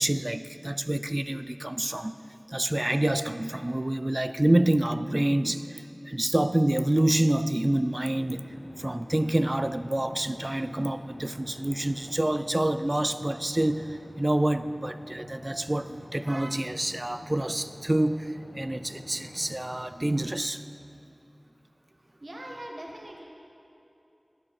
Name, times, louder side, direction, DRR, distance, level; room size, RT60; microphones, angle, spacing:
voice 1, 0.0-2.1 2.5-8.4 8.8-20.6, right 1 dB, 30° right, 12 dB, 0.4 m, -27 dB
sound 1, 7.9-19.8, left 1 dB, 60° left, 1.0 m, -47 dB
voice 2, 22.2-23.2, right 1 dB, 50° right, -1 dB, 1.4 m, -41 dB
11.5 x 8.6 x 4.8 m, 2.7 s
wide cardioid pair, 55°, 0 cm